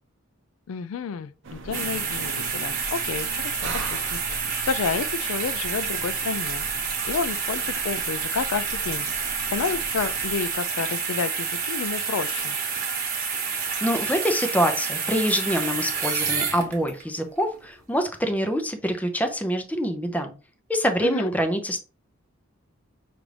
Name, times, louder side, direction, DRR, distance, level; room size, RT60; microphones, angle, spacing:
voice 1, 0.7-12.6 21.0-21.3, left 6 dB, 75° left, 0.3 m, -31 dB
sound 1, 1.4-10.6, right 2 dB, 60° right, 0.6 m, -40 dB
sound 2, 1.7-17.0 17.5-17.7, right 6 dB, 45° right, 1.2 m, -29 dB
voice 2, 13.5-20.3 20.7-21.8, equal, 5° left, 0.6 m, -25 dB
6.0 x 2.5 x 3.3 m
head